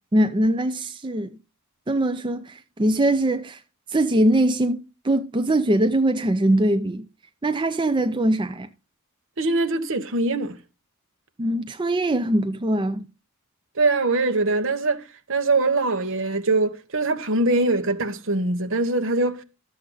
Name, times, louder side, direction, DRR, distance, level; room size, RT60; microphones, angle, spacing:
voice 1, 0.1-1.4 1.9-3.6 3.9-7.1 7.4-8.7 11.4-13.1, right 1 dB, 20° right, 0.5 m, -22 dB
voice 2, 9.4-10.6 13.7-19.4, right 2 dB, 65° right, 1.1 m, -23 dB
12.5 x 7.7 x 3.9 m
head